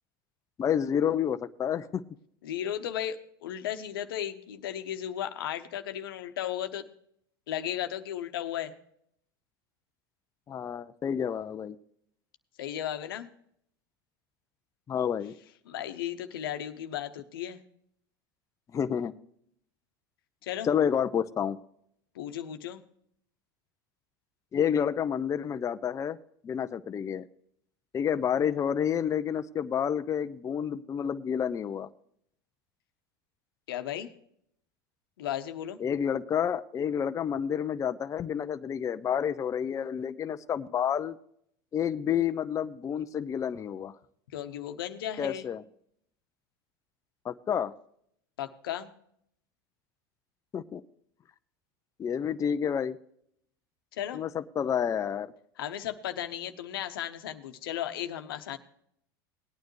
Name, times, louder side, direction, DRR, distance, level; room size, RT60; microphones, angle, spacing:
voice 1, 0.6-2.0 10.5-11.8 14.9-15.3 18.7-19.1 20.6-21.6 24.5-26.2 26.4-27.2 27.9-31.9 35.8-41.2 41.7-44.0 45.2-45.6 47.2-47.7 50.5-50.8 52.0-53.0 54.1-55.3, left 8 dB, 25° left, 10 dB, 0.5 m, -29 dB
voice 2, 2.4-6.8 7.5-8.7 12.6-13.3 15.7-17.6 20.4-20.7 22.1-22.8 33.7-34.1 35.2-35.8 44.3-45.5 48.4-48.9 53.9-54.2 55.6-58.6, left 11 dB, 85° left, 9 dB, 0.9 m, -35 dB
18.5 x 9.3 x 3.1 m, 0.70 s
supercardioid pair, 100°, 12 cm